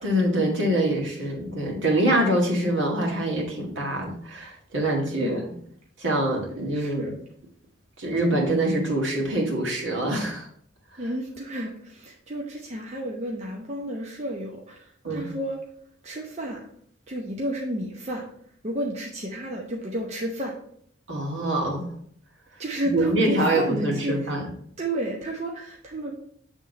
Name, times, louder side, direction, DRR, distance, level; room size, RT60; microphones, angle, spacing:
voice 1, 0.0-5.4 6.0-7.1 8.0-10.5 11.0-11.1 15.0-15.3 21.1-21.9 22.8-24.5, right 1 dB, 70° right, -1 dB, 1.8 m, -25 dB
voice 2, 5.1-5.5 6.7-7.1 11.0-15.6 16.0-16.6 17.1-18.2 18.6-20.5 22.6-24.3 24.8-26.2, right 1 dB, 35° right, -1 dB, 0.8 m, -31 dB
8.1 x 3.5 x 4.0 m, 0.63 s
head